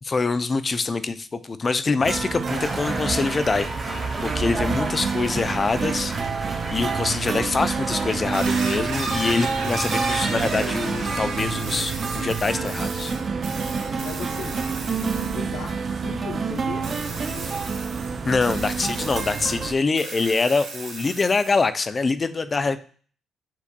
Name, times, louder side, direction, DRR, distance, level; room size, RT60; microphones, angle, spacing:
voice 1, 0.0-6.4 6.7-13.1 18.3-22.8, left 4 dB, 30° left, 12 dB, 0.4 m, -25 dB
sound 1, 2.0-19.7, right 5 dB, 40° right, 0.4 m, -28 dB
sound 2, 2.5-11.2, right 2 dB, 20° right, 1.4 m, -35 dB
sound 3, 8.3-15.5 16.8-19.5 20.0-21.6, right 3 dB, 90° right, 1.8 m, -34 dB
voice 2, 14.0-14.6 15.3-17.7 22.5-22.7, left 5 dB, 80° left, 1 dB, 0.6 m, -38 dB
7.2 x 2.7 x 2.2 m, 0.43 s
cardioid pair, 90°, 0 cm